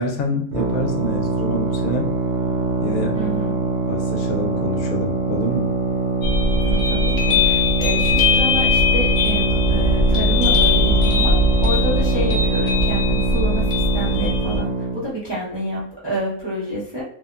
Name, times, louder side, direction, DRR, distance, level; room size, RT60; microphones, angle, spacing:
voice 1, 0.0-2.1 2.8-3.2 3.9-5.7, left 1 dB, 70° left, 1 dB, 1.0 m, -27 dB
sound 1, 0.5-15.0, right 3 dB, 70° right, 0.7 m, -23 dB
voice 2, 3.1-3.6 6.6-17.0, right 1 dB, 30° right, -8 dB, 0.5 m, -28 dB
sound 2, 6.2-14.6, left 2 dB, 50° left, 0.6 m, -19 dB
2.7 x 2.0 x 2.3 m, 0.65 s
omnidirectional pair, 1.6 m